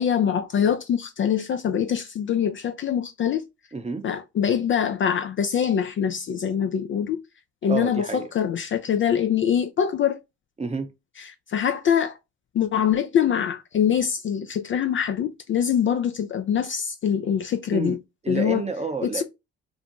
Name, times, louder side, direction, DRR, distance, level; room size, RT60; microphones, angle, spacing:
voice 1, 0.0-3.4 4.0-7.2 7.6-10.2 11.5-12.2 12.5-18.0 18.3-18.6 19.0-19.2, left 8 dB, 35° left, 0.4 m, -24 dB
voice 2, 3.7-4.0 7.7-8.2 10.6-10.9 17.7-18.0 18.2-19.2, right 4 dB, 20° right, 0.6 m, -29 dB
2.6 x 2.1 x 2.8 m
hypercardioid pair, 55°, 35 cm